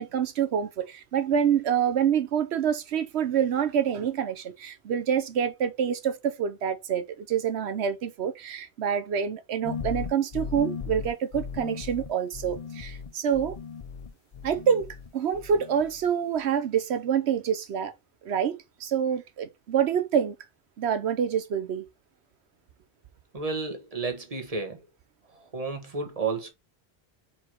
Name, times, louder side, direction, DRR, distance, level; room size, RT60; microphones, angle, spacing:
voice 1, 0.0-13.6 14.4-17.9 18.2-20.4 20.8-21.8, right 8 dB, 85° right, 1.0 m, -27 dB
sound 1, 9.6-15.1 15.3-16.1, left 6 dB, 40° left, 0.7 m, -37 dB
voice 2, 23.3-24.8 25.4-26.5, right 4 dB, 35° right, 1.4 m, -32 dB
4.7 x 4.5 x 4.5 m
omnidirectional pair, 1.1 m